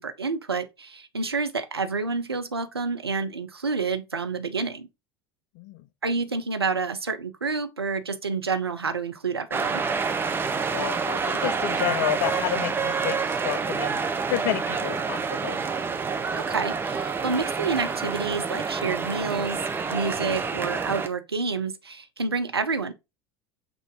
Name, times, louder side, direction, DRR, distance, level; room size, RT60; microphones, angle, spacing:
voice 1, 0.0-4.9 6.0-9.8 16.3-19.6 19.9-22.9, right 4 dB, 85° right, 0.5 m, -29 dB
sound 1, 9.5-21.1, right 5 dB, 15° right, 0.6 m, -28 dB
voice 2, 10.7-13.2 13.4-14.0 14.3-15.7, left 13 dB, 55° left, 0.4 m, -30 dB
5.9 x 2.6 x 3.5 m
figure-of-eight pair, 75°, 13 cm